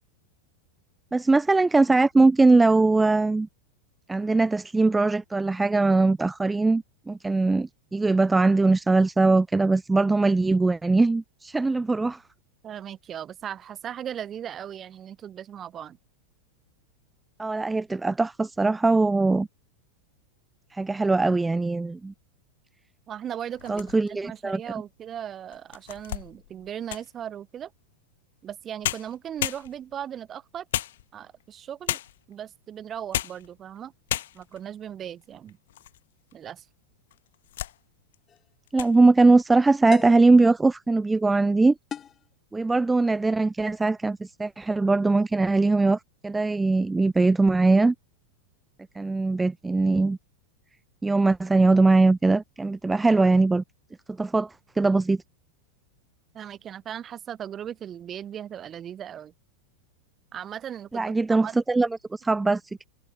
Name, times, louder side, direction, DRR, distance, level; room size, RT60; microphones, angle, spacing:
voice 1, 1.1-3.5 4.1-12.2 17.4-19.5 20.7-22.1 23.7-24.6 38.7-41.8 42.5-47.9 48.9-50.2 51.0-53.6 54.1-55.2 60.9-62.9, right 3 dB, 10° right, 1.0 m, -21 dB
voice 2, 12.6-16.0 23.1-27.7 28.4-30.7 31.1-32.0 32.3-33.9 34.3-35.6 36.3-36.7 56.3-59.3 60.3-61.6, right 9 dB, 25° right, 7.4 m, -37 dB
sound 1, 23.5-24.3 24.9-25.0 25.5-27.2 28.5-28.6 28.8-30.0 30.7-31.4 31.9-32.3 32.9-33.5 33.8-33.9 34.1-34.6 35.2-36.0 36.3-36.4 37.1-37.8 38.1-38.4 38.7-39.0, left 13 dB, 60° left, 1.5 m, -33 dB
sound 2, 38.3-38.5 39.9-40.3 41.9-42.3, left 8 dB, 25° left, 1.2 m, -37 dB
figure-of-eight pair, 90°, 0 cm